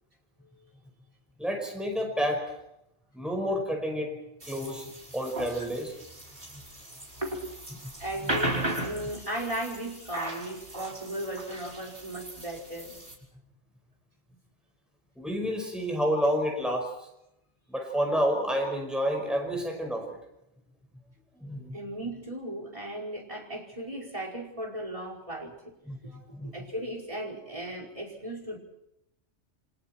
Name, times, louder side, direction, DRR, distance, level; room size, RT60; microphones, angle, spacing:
voice 1, 1.4-2.5 3.1-4.1 4.5-5.9 15.2-16.9 17.7-20.2 21.4-21.8 25.9-26.5, equal, ahead, 2 dB, 5.3 m, -29 dB
sound 1, 4.4-13.1, right 1 dB, 55° right, 5.5 m, -37 dB
voice 2, 7.2-7.5 8.0-13.0 21.7-25.8 26.5-28.6, right 1 dB, 30° right, 1 dB, 5.4 m, -36 dB
29.5 x 25.5 x 4.5 m, 0.81 s
omnidirectional pair, 1.2 m